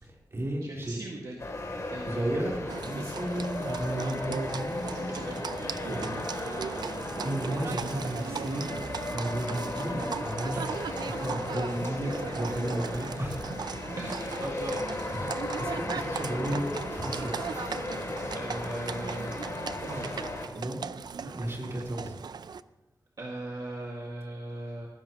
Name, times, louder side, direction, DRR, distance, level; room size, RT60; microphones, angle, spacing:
voice 1, 0.0-1.0 2.1-5.3 5.9-8.7 9.1-10.7 11.0-13.5 15.1-17.5 20.6-20.8 21.2-22.1, right 1 dB, 40° right, -2 dB, 3.9 m, -34 dB
voice 2, 0.6-1.4 1.9-2.3 4.8-5.9 6.4-6.6 14.0-15.1 18.3-19.3 19.8-20.1 23.2-24.9, right 2 dB, 60° right, -1 dB, 1.9 m, -39 dB
sound 1, 1.4-20.5, left 2 dB, 45° left, 2.9 m, -36 dB
sound 2, 1.8-17.2, left 1 dB, ahead, 3.6 m, -49 dB
Livestock farm animals working animals, 2.7-22.6, right 6 dB, 85° right, 0.4 m, -38 dB
18.0 x 15.5 x 3.0 m, 1.1 s
wide cardioid pair, 125°, 7 cm